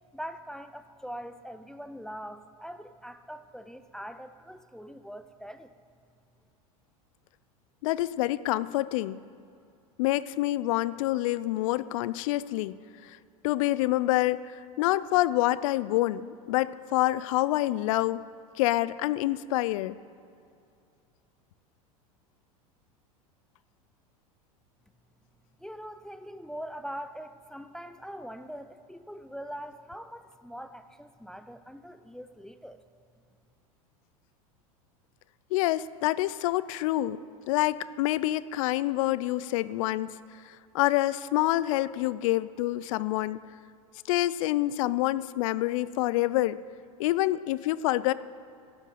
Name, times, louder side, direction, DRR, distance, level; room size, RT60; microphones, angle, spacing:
voice 1, 0.1-5.7 25.6-32.8, equal, 5° left, 10 dB, 0.6 m, -42 dB
voice 2, 7.8-9.2 10.0-12.8 13.0-13.2 13.4-18.2 18.6-20.0 35.5-37.2 37.5-40.1 40.5-43.4 44.1-46.6 47.0-48.1, left 16 dB, 60° left, 18 dB, 0.5 m, -27 dB
12.5 x 8.3 x 9.4 m, 2.5 s
hypercardioid pair, 90°, 19 cm